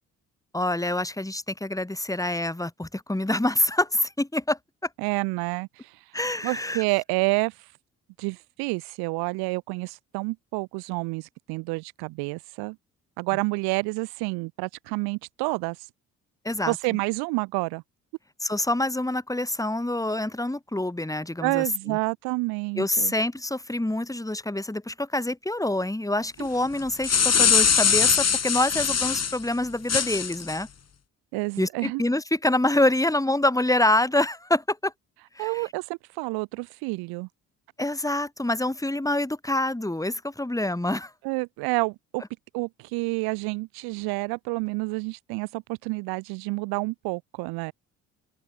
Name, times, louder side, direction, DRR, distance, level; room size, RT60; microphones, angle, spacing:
voice 1, 0.5-4.6 6.1-6.8 16.4-16.8 18.4-22.0 22.8-30.7 31.6-34.9 35.3-35.6 37.8-41.1, left 1 dB, 10° left, 4.5 m, -26 dB
voice 2, 5.0-5.9 6.4-7.5 8.2-12.8 13.2-15.8 16.7-17.8 21.4-23.1 26.4-26.5 31.3-32.0 35.4-37.3 41.2-42.2 42.5-47.7, right 27 dB, 85° right, 3.8 m, -29 dB
sound 1, 26.8-29.4 29.9-30.6, left 7 dB, 45° left, 3.6 m, -21 dB
open air
hypercardioid pair, 55°, 37 cm